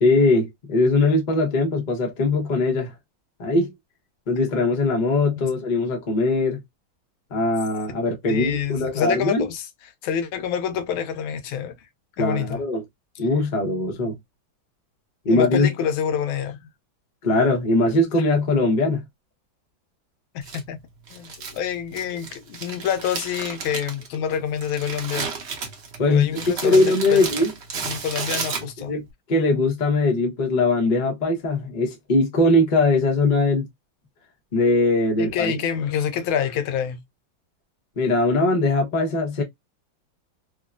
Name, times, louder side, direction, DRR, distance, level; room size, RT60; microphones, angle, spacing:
voice 1, 0.0-2.9 3.4-3.7 4.3-6.6 7.3-9.5 12.2-12.8 13.2-14.2 15.2-15.7 17.2-19.0 26.0-27.5 28.8-29.0 29.3-33.6 34.5-35.6 38.0-39.4, left 2 dB, 45° left, 0.6 m, -21 dB
voice 2, 8.3-9.6 10.0-11.8 12.2-12.6 15.3-16.7 20.3-20.8 21.1-25.3 26.1-27.3 27.7-28.9 35.2-37.0, left 8 dB, 85° left, 1.4 m, -27 dB
Crumpling crinkling, 20.4-29.0, right 5 dB, 70° right, 0.6 m, -33 dB
3.5 x 2.1 x 2.4 m
omnidirectional pair, 2.2 m